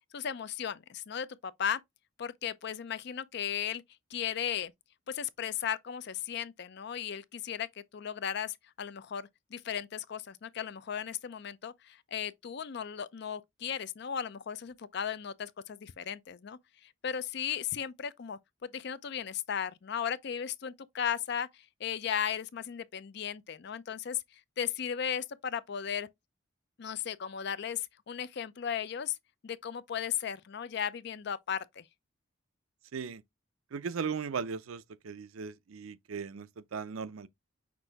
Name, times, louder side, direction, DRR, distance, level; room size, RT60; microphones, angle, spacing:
voice 1, 0.1-1.8 2.2-3.8 4.1-4.7 5.1-7.7 7.9-18.4 18.7-24.2 24.6-26.1 26.8-29.2 29.4-31.8, left 8 dB, 55° left, 0.4 m, -36 dB
voice 2, 33.7-37.3, right 6 dB, 80° right, 0.5 m, -37 dB
6.0 x 2.5 x 3.4 m
head